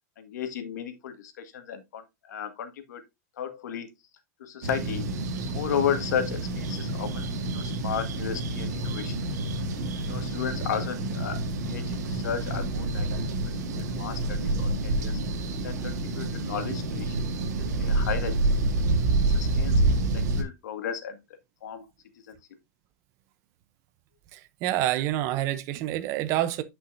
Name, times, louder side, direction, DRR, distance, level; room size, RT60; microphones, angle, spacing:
voice 1, 0.2-3.0 3.4-3.9 4.4-5.0 5.5-9.4 10.0-11.4 11.7-13.1 13.7-15.2 15.6-17.2 17.8-18.3 19.3-21.2 21.6-21.9 22.3-22.4, left 8 dB, 75° left, 1.8 m, -34 dB
sound 1, 4.6-20.4, right 2 dB, 70° right, 1.8 m, -28 dB
voice 2, 24.3-26.6, right 14 dB, 35° right, 0.6 m, -27 dB
9.8 x 5.6 x 2.6 m
supercardioid pair, 165°, 9 cm